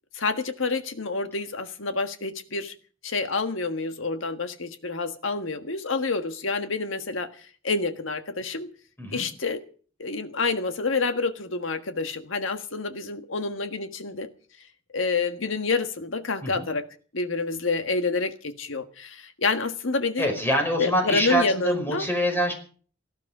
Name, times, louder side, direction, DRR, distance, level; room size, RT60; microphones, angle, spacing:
voice 1, 0.1-2.7 3.0-7.3 7.6-8.7 9.1-9.6 10.0-14.3 14.9-16.8 17.1-20.3 20.8-22.1, left 3 dB, 80° left, 1.6 m, -28 dB
voice 2, 20.2-22.5, equal, 10° left, 5.2 m, -25 dB
18.0 x 14.0 x 5.0 m
head